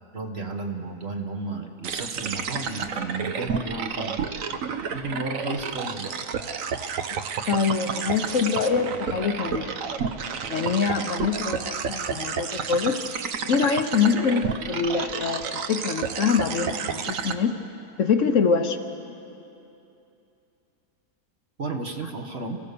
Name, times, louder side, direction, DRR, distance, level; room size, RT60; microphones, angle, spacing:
voice 1, 0.1-4.3 4.8-6.1 21.6-22.6, right 3 dB, 45° right, 3 dB, 1.6 m, -33 dB
sound 1, 1.8-17.3, right 6 dB, 65° right, 1.2 m, -31 dB
voice 2, 7.5-9.8 10.5-13.0 13.5-17.6 18.0-18.8, left 5 dB, 60° left, 7 dB, 1.2 m, -24 dB
27.5 x 16.0 x 6.8 m, 2.8 s
omnidirectional pair, 1.6 m